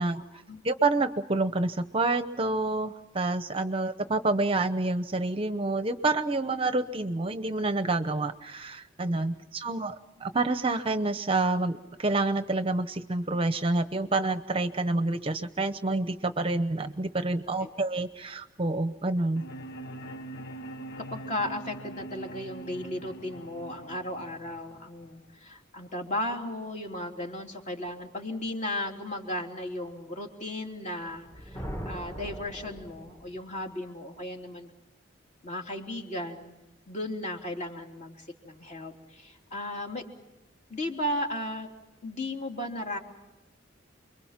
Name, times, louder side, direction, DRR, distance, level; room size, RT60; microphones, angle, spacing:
voice 1, 0.1-0.6 17.6-17.7 21.0-34.7 35.4-36.5 36.9-40.0 40.7-41.7 42.0-43.0, left 1 dB, 40° left, 2 dB, 3.3 m, -35 dB
voice 2, 0.6-19.4, right 2 dB, 30° right, 10 dB, 0.8 m, -28 dB
sound 1, 19.4-25.4, right 1 dB, 55° left, 1.0 m, -43 dB
Thunder, 31.1-33.5, equal, 15° left, 1.4 m, -40 dB
29.5 x 23.0 x 5.9 m, 0.99 s
head